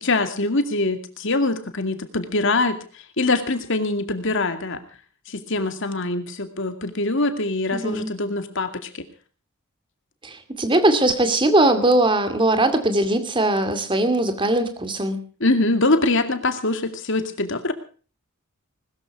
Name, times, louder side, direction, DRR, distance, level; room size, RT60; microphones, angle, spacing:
voice 1, 0.0-2.8 3.2-4.8 5.3-8.9 15.4-17.7, left 2 dB, 60° left, 8 dB, 2.3 m, -23 dB
voice 2, 7.7-8.1 10.2-15.2, right 1 dB, 25° right, 8 dB, 2.3 m, -20 dB
20.5 x 13.5 x 4.7 m, 0.39 s
head